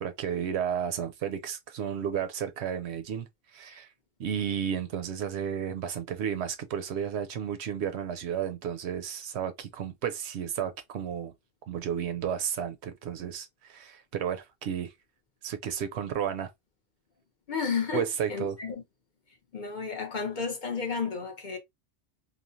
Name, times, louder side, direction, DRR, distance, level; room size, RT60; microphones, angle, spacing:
voice 1, 0.0-3.9 4.2-11.3 11.7-14.9 15.4-16.5 17.9-18.6, right 8 dB, 75° right, 0.8 m, -32 dB
voice 2, 17.5-18.8 19.5-21.6, left 5 dB, 50° left, 0.8 m, -32 dB
3.1 x 2.1 x 2.6 m
omnidirectional pair, 1.2 m